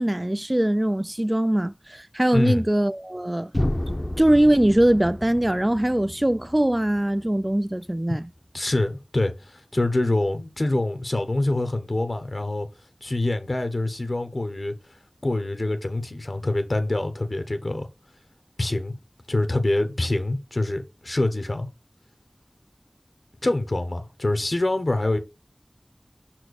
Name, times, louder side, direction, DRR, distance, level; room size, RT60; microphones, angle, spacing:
voice 1, 0.0-3.5 4.2-8.3, right 1 dB, 25° right, 0.4 m, -22 dB
voice 2, 2.3-2.7 8.5-12.7 13.0-14.8 15.2-17.9 18.6-18.9 19.3-21.7 23.4-25.2, left 2 dB, 70° left, 1.0 m, -25 dB
sound 1, 3.5-7.5, left 1 dB, 35° left, 0.7 m, -31 dB
5.9 x 4.4 x 6.4 m
wide cardioid pair, 40°, 0 cm